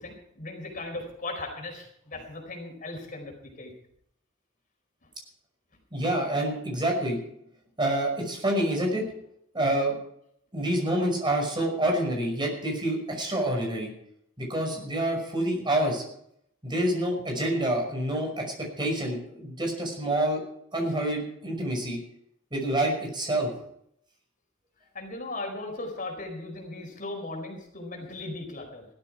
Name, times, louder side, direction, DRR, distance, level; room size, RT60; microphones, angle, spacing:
voice 1, 0.0-3.7 24.9-28.9, left 2 dB, 45° left, 2 dB, 4.6 m, -37 dB
voice 2, 5.9-7.2 7.8-9.0 9.5-10.0 10.5-13.9 14.4-16.0 16.6-20.4 20.7-22.0 22.5-23.5, right 1 dB, 25° right, 1 dB, 5.7 m, -27 dB
17.0 x 13.0 x 4.8 m, 0.71 s
head